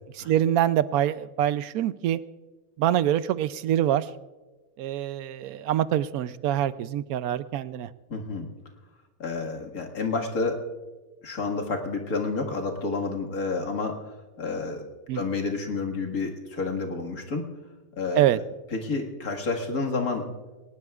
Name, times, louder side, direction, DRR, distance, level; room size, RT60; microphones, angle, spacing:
voice 1, 0.1-2.2 2.8-4.1 4.8-7.9 15.1-15.2 18.2-18.4, right 11 dB, 90° right, 14 dB, 1.1 m, -25 dB
voice 2, 8.1-8.5 9.2-10.6 11.2-14.1 14.4-14.9 15.1-17.5 18.0-18.2 18.7-20.2, left 3 dB, 85° left, 1 dB, 2.3 m, -29 dB
22.0 x 19.0 x 2.4 m, 1.2 s
omnidirectional pair, 1.5 m